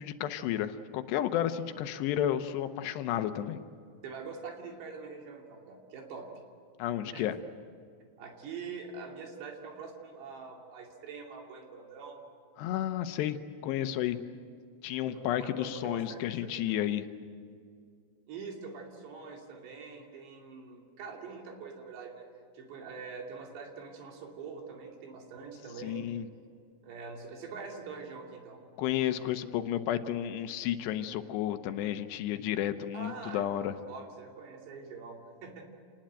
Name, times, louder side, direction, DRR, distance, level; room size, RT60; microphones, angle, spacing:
voice 1, 0.0-3.6 6.8-7.4 12.6-13.4 13.6-14.2 14.8-17.1 25.8-26.3 28.8-33.7, left 11 dB, 80° left, 9 dB, 3.0 m, -32 dB
voice 2, 4.0-6.3 7.1-7.2 8.2-12.2 15.0-16.8 18.3-22.3 22.5-26.1 26.8-28.6 32.9-35.6, right 5 dB, 75° right, 1 dB, 4.8 m, -44 dB
28.5 x 19.5 x 9.0 m, 2.2 s
omnidirectional pair, 5.0 m